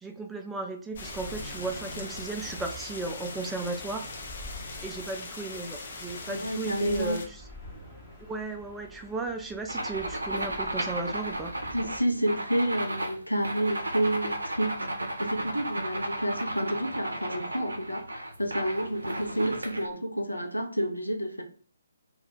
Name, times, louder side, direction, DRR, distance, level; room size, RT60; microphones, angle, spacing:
voice 1, 0.0-4.1 4.8-7.4 8.3-11.5, right 3 dB, 5° right, 4 dB, 0.3 m, -35 dB
sound 1, 0.9-12.0, equal, 15° left, 0.8 m, -46 dB
sound 2, 1.0-7.3, left 3 dB, 45° left, 0.6 m, -41 dB
voice 2, 6.3-7.2 11.7-14.7 15.2-21.4, right 1 dB, 85° left, 3 dB, 0.6 m, -29 dB
sound 3, 9.7-19.9, right 1 dB, 75° right, 0.6 m, -34 dB
2.3 x 2.3 x 3.6 m, 0.43 s
figure-of-eight pair, 135°, 0 cm